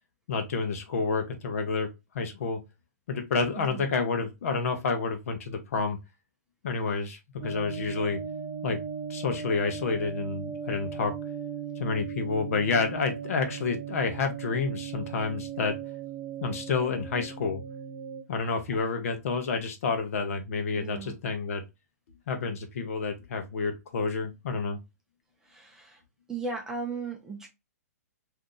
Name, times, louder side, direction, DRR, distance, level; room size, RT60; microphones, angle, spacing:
voice 1, 0.3-1.9 2.1-2.6 3.1-6.0 6.6-8.2 8.6-8.8 9.1-11.1 11.8-15.8 16.4-17.6 18.3-21.6 22.3-24.8, left 4 dB, 60° left, 0.9 m, -29 dB
sound 1, 7.4-18.2, right 7 dB, 40° right, 0.8 m, -37 dB
voice 2, 20.8-21.1 25.4-26.0 26.3-27.5, right 4 dB, 5° right, 0.6 m, -36 dB
2.7 x 2.4 x 3.8 m
hypercardioid pair, 150°, 9 cm